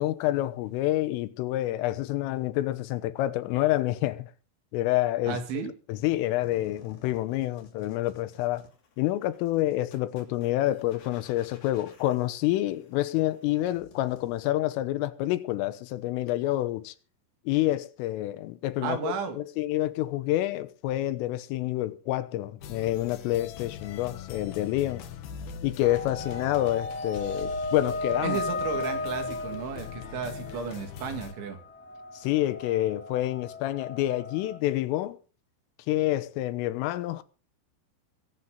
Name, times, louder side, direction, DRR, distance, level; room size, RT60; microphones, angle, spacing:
voice 1, 0.0-4.3 4.7-5.4 5.9-8.7 9.0-17.0 17.5-25.0 25.6-28.4 32.2-35.2 35.9-37.2, left 15 dB, 90° left, 3.6 m, -28 dB
voice 2, 5.3-5.7 18.8-19.4 28.2-31.6, right 6 dB, 70° right, 4.6 m, -33 dB
sound 1, 6.4-14.4, left 3 dB, 50° left, 4.2 m, -56 dB
sound 2, 22.6-31.3, left 8 dB, 65° left, 2.6 m, -42 dB
sound 3, 25.8-34.6, left 2 dB, 5° left, 1.2 m, -35 dB
22.5 x 9.4 x 3.8 m
omnidirectional pair, 5.7 m